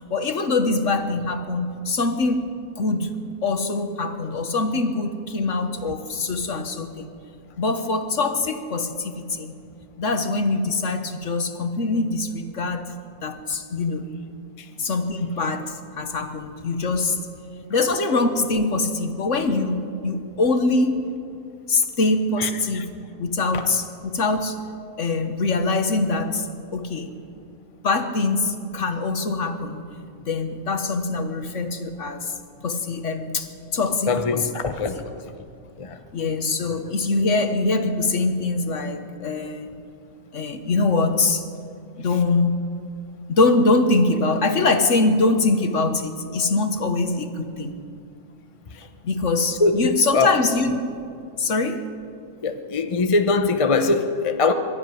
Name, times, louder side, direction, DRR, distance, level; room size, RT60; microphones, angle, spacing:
voice 1, 0.1-3.2 3.4-7.1 7.6-9.5 10.0-12.9 13.2-14.1 14.8-17.2 17.7-21.1 21.7-22.9 23.2-24.6 25.0-26.5 26.7-27.1 27.8-29.9 30.3-32.3 32.6-34.5 34.9-35.0 36.1-39.7 40.3-41.4 42.0-42.7 43.3-47.8 49.0-50.9 51.4-51.9, left 3 dB, 55° left, 7 dB, 1.6 m, -23 dB
voice 2, 22.4-22.8 23.5-23.6 34.1-35.4 35.8-36.0 48.7-48.8 49.6-50.3 52.4-54.5, left 3 dB, 25° left, 7 dB, 0.8 m, -22 dB
23.0 x 13.0 x 9.2 m, 2.4 s
omnidirectional pair, 1.6 m